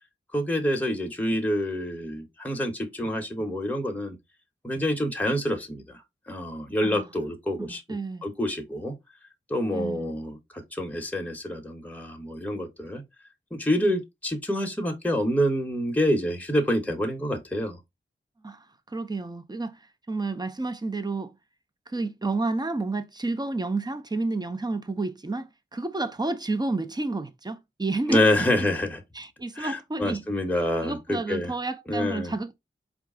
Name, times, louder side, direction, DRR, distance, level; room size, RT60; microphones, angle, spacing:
voice 1, 0.3-4.2 4.6-6.0 6.3-7.8 8.2-8.9 9.5-13.0 13.5-17.8 28.1-29.0 29.6-31.5 31.9-32.3, left 1 dB, 5° left, 0.9 m, -27 dB
voice 2, 7.6-8.3 9.7-10.1 18.4-21.3 21.9-28.2 28.6-28.7 29.1-30.2 30.8-32.6, right 3 dB, 20° right, 0.6 m, -30 dB
4.6 x 2.4 x 3.5 m
wide cardioid pair, 70°, 20 cm